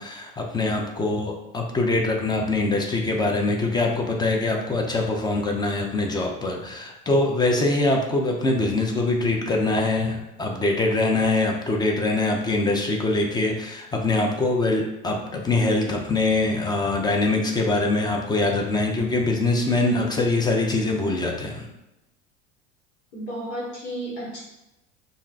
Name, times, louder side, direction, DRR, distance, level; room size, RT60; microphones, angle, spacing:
voice 1, 0.0-21.7, left 2 dB, 10° left, 1 dB, 0.3 m, -23 dB
voice 2, 23.1-24.4, right 1 dB, 75° left, -5 dB, 1.5 m, -32 dB
2.4 x 2.1 x 3.8 m, 0.95 s
hypercardioid pair, 90°, 38 cm